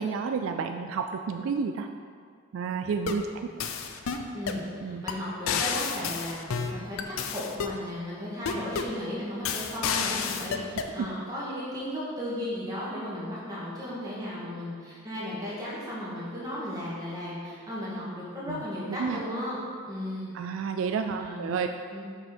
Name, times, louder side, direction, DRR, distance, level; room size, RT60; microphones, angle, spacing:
voice 1, 0.0-1.9 2.5-3.7 4.8-5.0 11.0-11.1 18.5-19.2 20.3-21.7, right 5 dB, 70° right, 6 dB, 0.3 m, -31 dB
sound 1, 2.9-3.3 3.6-4.6 5.1-5.2 5.5-7.8 8.5-9.0 9.5-10.9, left 6 dB, 75° left, 0.5 m, -30 dB
voice 2, 4.3-19.6 19.9-20.3 21.1-21.5 21.9-22.1, left 1 dB, 15° right, -7 dB, 1.6 m, -35 dB
6.0 x 5.5 x 4.4 m, 2.1 s
head